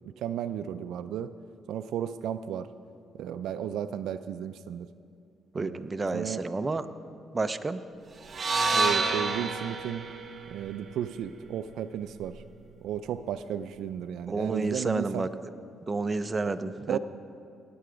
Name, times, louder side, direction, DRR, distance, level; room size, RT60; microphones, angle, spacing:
voice 1, 0.2-1.3 1.7-2.7 3.1-4.9 5.5-5.9 6.1-6.4 8.7-10.1 10.5-12.4 12.8-15.3 16.9-17.0, right 9 dB, 80° right, 12 dB, 0.4 m, -34 dB
voice 2, 5.5-6.9 7.3-7.8 14.3-15.3 15.9-17.0, right 3 dB, 25° right, 10 dB, 0.6 m, -30 dB
sound 1, 8.3-12.5, right 3 dB, 40° right, 1.1 m, -30 dB
18.0 x 7.8 x 5.1 m, 2.5 s
cardioid pair, 90°, 0 cm